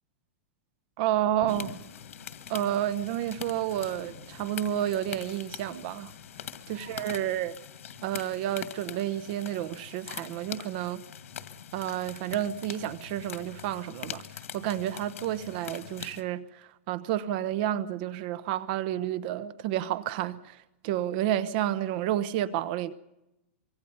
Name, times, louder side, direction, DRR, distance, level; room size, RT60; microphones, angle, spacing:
voice 1, 1.0-1.7 2.5-6.1 6.7-7.5 8.0-11.0 11.7-14.2 14.5-22.9, right 12 dB, 45° right, 1.1 m, -30 dB
sound 1, 1.4-7.3, left 4 dB, 30° left, 7.9 m, -51 dB
sound 2, 1.5-16.2, left 9 dB, 85° left, 2.0 m, -43 dB
25.5 x 24.0 x 5.5 m
supercardioid pair, 155°, 7 cm